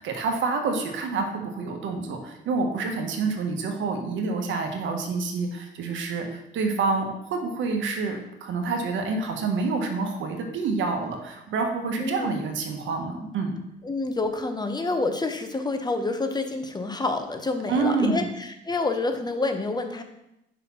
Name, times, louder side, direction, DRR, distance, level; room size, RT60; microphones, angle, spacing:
voice 1, 0.0-13.5 17.7-18.3, right 4 dB, 75° right, 4 dB, 1.1 m, -27 dB
voice 2, 13.8-20.0, left 3 dB, 20° left, 6 dB, 0.7 m, -28 dB
5.1 x 4.0 x 5.7 m, 0.85 s
cardioid pair, 90°, 20 cm